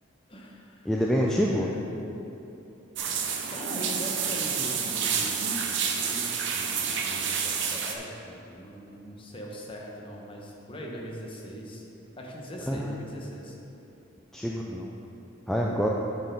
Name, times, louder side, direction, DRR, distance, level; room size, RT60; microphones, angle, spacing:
voice 1, 0.3-1.7 2.0-2.3 3.5-5.4 5.6-11.8 12.2-13.5, equal, 25° left, -2 dB, 0.9 m, -41 dB
voice 2, 0.9-1.7 12.7-12.9 14.3-14.9 15.5-15.9, equal, ahead, -2 dB, 0.3 m, -26 dB
sound 1, 3.0-7.9, right 6 dB, 60° right, 0.6 m, -29 dB
8.5 x 4.2 x 5.1 m, 2.9 s
head